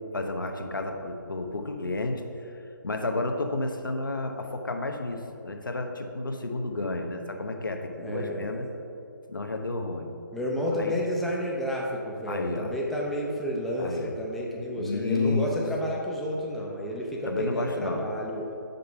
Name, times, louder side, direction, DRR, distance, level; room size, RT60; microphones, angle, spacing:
voice 1, 0.1-2.5 2.8-8.7 9.3-10.1 10.8-10.9 12.3-12.7 13.8-14.1 14.7-15.4 17.2-18.0, left 2 dB, 70° left, 4 dB, 0.8 m, -31 dB
voice 2, 8.0-8.5 10.3-18.4, equal, ahead, -3 dB, 0.3 m, -30 dB
5.5 x 5.3 x 5.7 m, 2.7 s
figure-of-eight pair, 145°, 11 cm